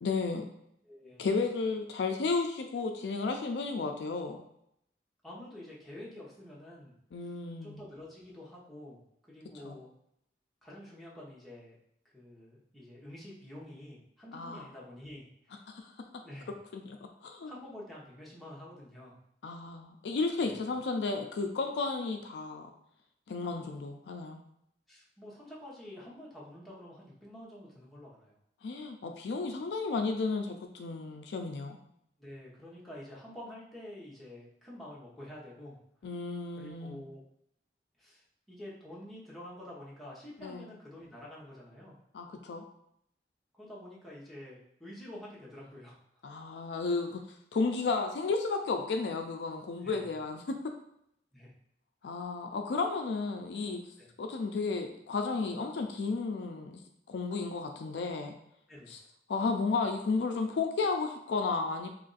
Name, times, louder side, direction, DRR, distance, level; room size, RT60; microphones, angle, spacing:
voice 1, 0.0-0.5 1.2-4.4 7.1-7.8 9.6-9.8 14.3-14.7 15.7-15.8 16.7-17.0 17.2-17.5 19.4-22.7 23.3-24.4 28.6-31.8 36.0-37.0 40.4-40.7 42.1-42.6 46.2-47.2 47.5-50.6 52.0-53.8 54.2-56.8 57.1-58.3 58.9-59.0 59.3-61.9, left 4 dB, 70° left, 4 dB, 0.4 m, -33 dB
voice 2, 0.8-1.2 5.2-6.9 7.6-9.0 9.3-9.9 10.6-11.8 12.1-15.5 16.2-16.5 17.5-19.2 20.4-20.7 24.9-28.4 32.2-35.8 36.6-37.2 38.0-41.9 43.5-46.0 49.8-50.2 51.3-51.5 54.0-54.1 58.7-58.9, left 1 dB, ahead, -7 dB, 0.9 m, -48 dB
3.0 x 2.5 x 3.9 m, 0.74 s
head